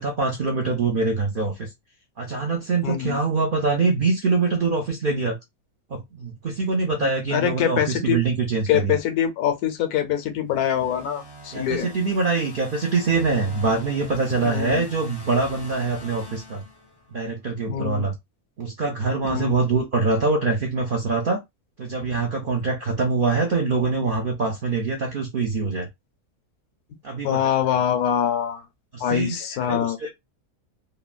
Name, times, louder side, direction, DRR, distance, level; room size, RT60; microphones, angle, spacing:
voice 1, 0.0-1.7 2.2-5.4 5.9-8.9 11.5-16.6 17.1-18.1 18.6-21.4 21.8-25.9 27.0-27.5 28.9-29.4 29.7-30.1, right 4 dB, 70° right, 0.5 m, -24 dB
voice 2, 2.8-3.2 7.0-8.2 8.7-11.9 14.4-14.8 17.7-18.1 19.2-19.6 27.2-28.7 29.0-30.0, left 9 dB, 80° left, 1.1 m, -24 dB
sound 1, 10.6-17.2, left 2 dB, 30° left, 0.4 m, -43 dB
3.1 x 2.2 x 2.4 m
omnidirectional pair, 1.6 m